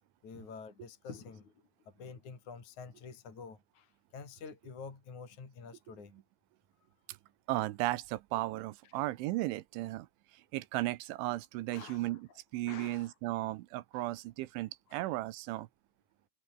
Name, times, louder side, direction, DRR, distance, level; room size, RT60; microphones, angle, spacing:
voice 1, 0.2-1.5 1.9-6.1 8.8-9.0 11.7-12.4 12.7-13.1 13.9-14.0 14.9-15.1, left 5 dB, 40° left, 5.7 m, -48 dB
voice 2, 7.5-10.1 10.5-12.3 12.5-15.7, right 17 dB, 80° right, 3.2 m, -35 dB
omnidirectional pair, 5.8 m